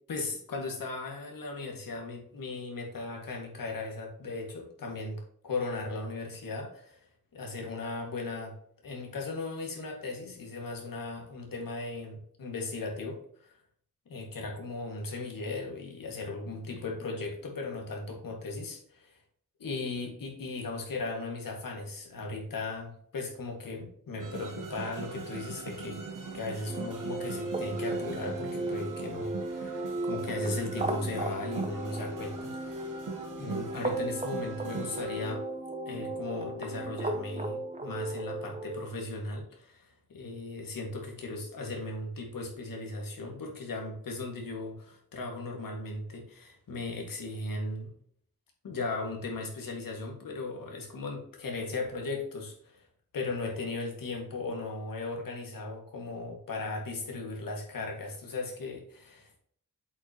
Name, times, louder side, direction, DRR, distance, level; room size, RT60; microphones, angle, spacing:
voice 1, 0.1-7.0 7.3-8.5 8.8-13.5 14.1-19.1 19.6-33.0 33.2-35.4 35.9-47.9 48.6-52.9 53.1-59.4, left 3 dB, 90° left, 1 dB, 1.9 m, -37 dB
sound 1, 24.2-35.3, right 5 dB, 70° right, 1.2 m, -42 dB
sound 2, 26.7-38.9, right 2 dB, 20° right, 0.8 m, -36 dB
8.0 x 5.6 x 2.9 m, 0.63 s
wide cardioid pair, 155°, 33 cm